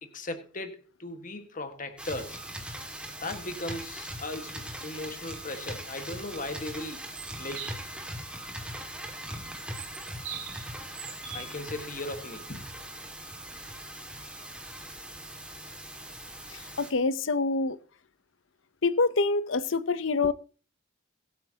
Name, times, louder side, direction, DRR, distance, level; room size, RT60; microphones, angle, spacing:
voice 1, 0.0-2.4 3.2-7.0 7.4-7.7 11.3-12.7, left 2 dB, 40° left, 1.6 m, -37 dB
sound 1, 2.0-16.9, right 1 dB, 5° right, 2.0 m, -41 dB
sound 2, 7.2-7.8 9.5-10.7 10.9-11.5, right 7 dB, 65° right, 2.7 m, -41 dB
voice 2, 16.5-17.8 18.8-20.3, left 3 dB, 70° left, 0.7 m, -26 dB
22.5 x 8.3 x 2.9 m
head